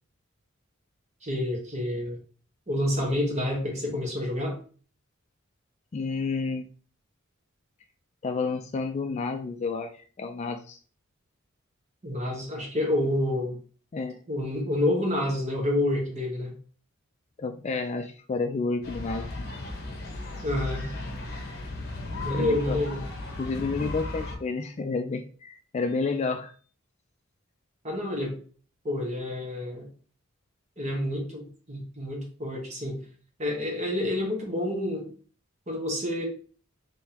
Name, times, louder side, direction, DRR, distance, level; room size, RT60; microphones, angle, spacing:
voice 1, 1.2-2.2 2.7-4.6 12.0-13.6 14.3-16.5 20.4-20.9 22.2-23.0 27.8-28.3 28.8-29.9 30.8-33.0 33.4-35.1 35.7-36.2, left 1 dB, 35° right, 0 dB, 1.1 m, -28 dB
voice 2, 5.9-6.7 8.2-10.8 13.9-14.2 17.4-19.3 22.3-22.8 23.4-26.5, left 4 dB, 30° left, 6 dB, 0.3 m, -30 dB
sound 1, 18.8-24.4, left 2 dB, 50° left, 0.9 m, -35 dB
3.7 x 3.4 x 2.8 m, 0.40 s
head